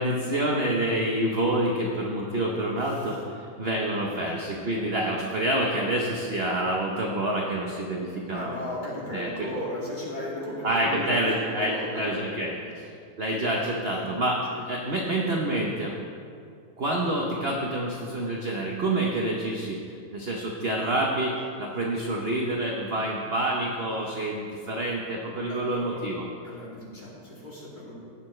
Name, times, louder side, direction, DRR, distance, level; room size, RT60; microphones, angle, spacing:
voice 1, 0.0-8.5 9.1-9.3 10.6-12.5 13.2-14.4 14.7-15.9 16.8-19.8 20.1-26.2, right 1 dB, 45° right, -1 dB, 0.8 m, -27 dB
voice 2, 2.8-3.2 8.3-12.4 13.3-13.4 14.0-14.1 14.5-14.6 25.5-26.0 26.4-27.9, left 1 dB, 25° left, -7 dB, 2.6 m, -36 dB
18.0 x 6.8 x 3.2 m, 2.3 s
omnidirectional pair, 2.1 m